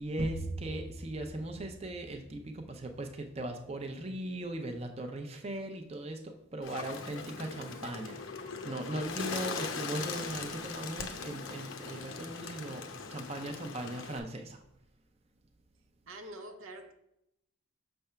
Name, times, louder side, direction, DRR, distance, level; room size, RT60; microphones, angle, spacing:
voice 1, 0.0-8.2 8.6-14.6, right 1 dB, 30° right, 0.6 m, -38 dB
Bird, 6.6-14.2, left 5 dB, 80° left, 0.8 m, -40 dB
voice 2, 16.1-16.9, right 1 dB, 85° right, 0.8 m, -45 dB
6.6 x 3.4 x 5.6 m
head